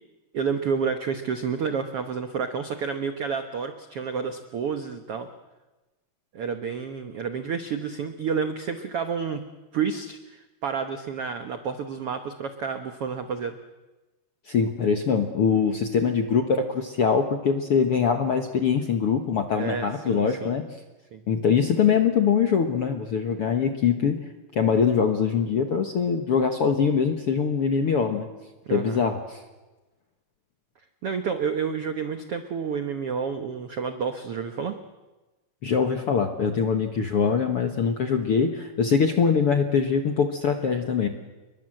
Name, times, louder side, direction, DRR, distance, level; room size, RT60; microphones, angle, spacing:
voice 1, 0.3-5.3 6.3-9.4 9.7-13.6 19.6-20.5 21.1-21.2 28.7-29.0 31.0-34.8, right 6 dB, 85° right, 8 dB, 1.2 m, -30 dB
voice 2, 14.5-20.6 21.3-24.2 24.5-28.3 28.7-29.4 35.6-41.1, left 6 dB, 60° left, 6 dB, 1.5 m, -23 dB
29.0 x 22.0 x 7.8 m, 1.1 s
omnidirectional pair, 4.5 m